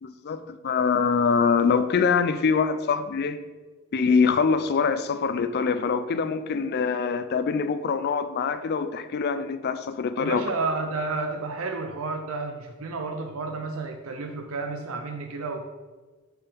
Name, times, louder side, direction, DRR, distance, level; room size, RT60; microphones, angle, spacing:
voice 1, 0.0-3.4 3.9-10.5, left 5 dB, 50° left, 11 dB, 0.4 m, -24 dB
voice 2, 10.2-15.6, right 3 dB, 70° right, 5 dB, 0.5 m, -31 dB
5.2 x 4.4 x 5.5 m, 1.3 s
head